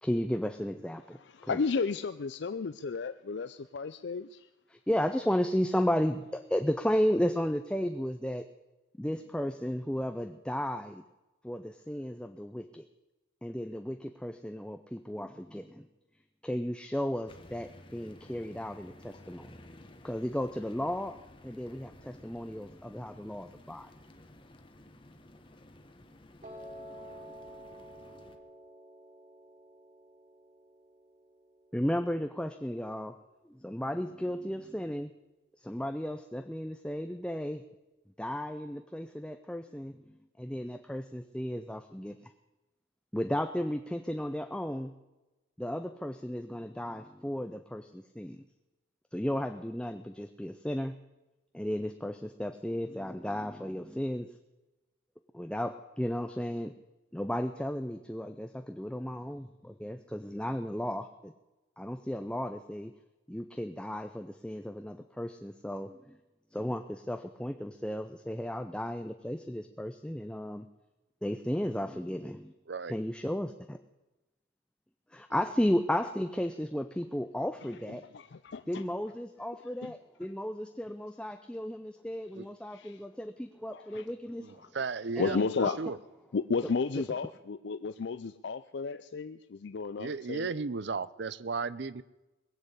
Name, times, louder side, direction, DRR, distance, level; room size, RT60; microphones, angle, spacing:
voice 1, 0.0-1.6 4.7-8.5 9.0-11.0 11.4-12.8 13.4-15.9 16.4-19.6 20.0-21.2 21.4-23.9 31.7-33.2 33.5-35.1 35.6-37.6 38.2-42.3 43.1-44.9 45.6-48.4 49.1-50.9 51.5-54.3 55.3-56.7 57.1-61.3 61.8-62.9 63.3-66.2 66.5-70.7 71.2-72.5 72.9-73.8 75.1-78.0 78.7-84.5 85.2-85.8, equal, 5° left, 7 dB, 0.5 m, -34 dB
voice 2, 1.2-4.5 77.9-78.8 79.8-79.9 82.7-83.0 83.7-84.1 85.2-85.8 86.3-90.6, left 4 dB, 60° left, 11 dB, 0.4 m, -33 dB
sound 1, 17.3-28.4, left 1 dB, 25° left, 1.1 m, -54 dB
Piano, 26.4-32.6, equal, 40° right, 3.0 m, -50 dB
voice 3, 84.4-85.4 85.8-86.0 90.0-92.0, right 4 dB, 60° right, 18 dB, 0.6 m, -35 dB
20.5 x 7.8 x 8.1 m, 1.1 s
head